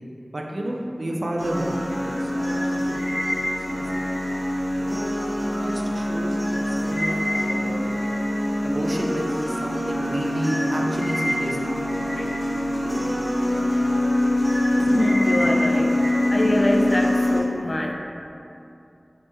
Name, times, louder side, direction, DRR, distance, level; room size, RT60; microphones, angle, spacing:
voice 1, 0.3-4.4 5.5-7.1 7.4-7.9 8.6-12.3, right 1 dB, 70° right, -1 dB, 0.3 m, -31 dB
sound 1, 1.4-17.4, left 1 dB, 15° left, 1.0 m, -24 dB
voice 2, 14.8-15.9 16.3-17.9, left 1 dB, 50° left, 1 dB, 0.3 m, -24 dB
2.9 x 2.6 x 3.3 m, 2.7 s
wide cardioid pair, 45°, 0 cm